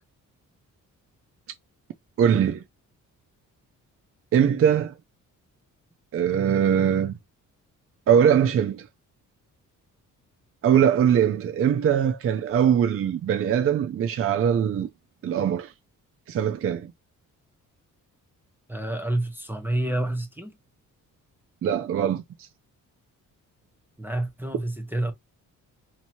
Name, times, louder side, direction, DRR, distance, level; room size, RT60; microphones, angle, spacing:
voice 1, 2.2-2.6 4.3-4.9 6.1-7.1 8.1-8.9 10.6-14.9 15.2-15.7 16.3-16.9 21.6-22.5, right 8 dB, 45° right, 0.5 m, -21 dB
voice 2, 18.7-20.6 24.0-25.1, right 1 dB, 5° right, 0.7 m, -28 dB
2.9 x 2.7 x 4.3 m
cardioid pair, 125°, 32 cm